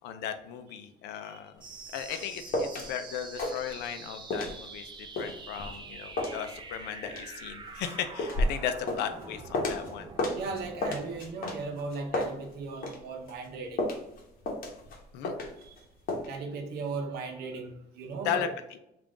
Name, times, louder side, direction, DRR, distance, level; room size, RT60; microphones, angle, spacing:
voice 1, 0.0-1.6 1.9-4.9 5.2-10.1 15.1-15.3 18.2-18.8, left 9 dB, 85° left, 9 dB, 0.5 m, -36 dB
sound 1, 1.6-2.9 3.2-4.0 4.3-9.9 10.2-13.0 13.3-15.8 16.1-16.3, left 2 dB, 55° left, 1.0 m, -33 dB
sound 2, 1.6-12.6, right 4 dB, 25° right, 0.6 m, -46 dB
voice 2, 10.3-13.9 15.6-15.8 16.3-18.5, right 4 dB, 75° right, 4 dB, 0.6 m, -37 dB
3.6 x 2.4 x 3.6 m, 0.82 s
cardioid pair, 110°, 17 cm